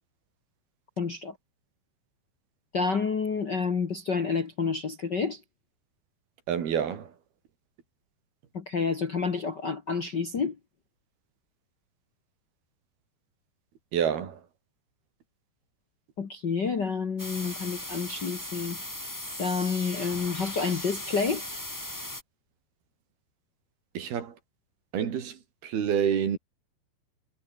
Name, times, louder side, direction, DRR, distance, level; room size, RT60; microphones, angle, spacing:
voice 1, 1.0-1.3 2.7-5.4 8.5-10.5 16.2-18.8 19.4-21.4, left 5 dB, 45° left, 1.5 m, -29 dB
voice 2, 6.5-7.1 13.9-14.4 23.9-24.3 24.9-26.4, right 8 dB, 85° right, 5.0 m, -28 dB
sound 1, 17.2-22.2, left 1 dB, 5° left, 2.2 m, -38 dB
omnidirectional pair, 4.3 m